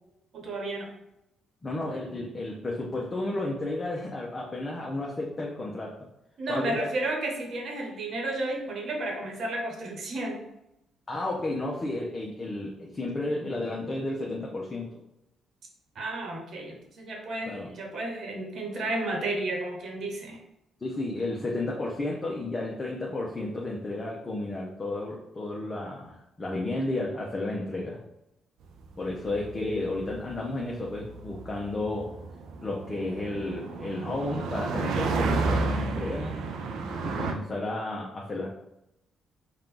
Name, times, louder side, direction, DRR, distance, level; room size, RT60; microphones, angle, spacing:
voice 1, 0.3-0.9 6.4-10.4 15.9-20.4, right 2 dB, 60° right, 1 dB, 1.1 m, -32 dB
voice 2, 1.6-6.0 6.5-6.8 11.1-15.0 17.5-17.7 20.8-28.0 29.0-32.1 32.6-36.4 37.0-38.5, left 2 dB, 25° left, -3 dB, 0.8 m, -32 dB
sound 1, 28.8-37.3, right 3 dB, 80° right, 0.5 m, -32 dB
4.3 x 2.5 x 3.8 m, 0.87 s
cardioid pair, 90°, 0 cm